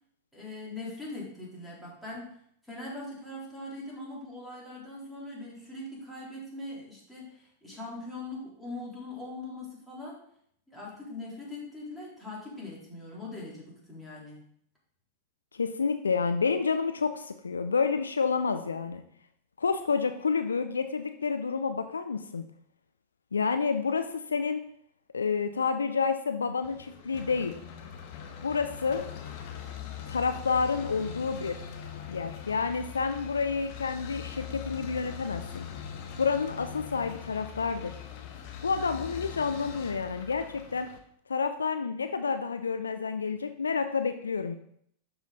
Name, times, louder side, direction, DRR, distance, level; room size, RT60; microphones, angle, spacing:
voice 1, 0.3-2.4 2.6-10.2 10.7-14.4, left 2 dB, ahead, -6 dB, 3.6 m, -41 dB
voice 2, 15.5-19.0 19.6-22.4 23.3-24.6 25.1-27.6 28.4-29.1 30.1-31.6 32.1-35.7 36.2-37.9 38.6-40.9 41.3-44.5, left 5 dB, 75° left, 8 dB, 0.5 m, -29 dB
sound 1, 26.6-41.0, left 8 dB, 45° left, 1.2 m, -42 dB
11.5 x 5.0 x 3.9 m, 0.67 s
figure-of-eight pair, 90°, 0 cm